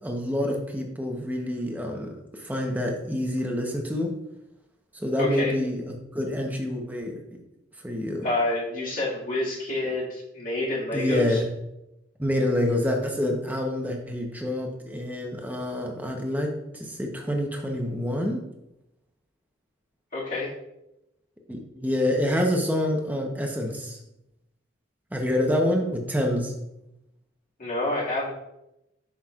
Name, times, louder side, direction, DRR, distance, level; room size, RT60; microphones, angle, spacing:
voice 1, 0.0-4.1 4.9-7.1 7.8-8.3 10.9-11.4 12.2-16.5 16.7-18.4 21.5-24.0 25.1-26.5, left 1 dB, 10° right, 1 dB, 0.9 m, -27 dB
voice 2, 5.2-5.5 8.2-11.4 20.1-20.5 27.6-28.3, left 2 dB, 45° left, -5 dB, 2.0 m, -28 dB
7.6 x 6.1 x 2.4 m, 0.88 s
head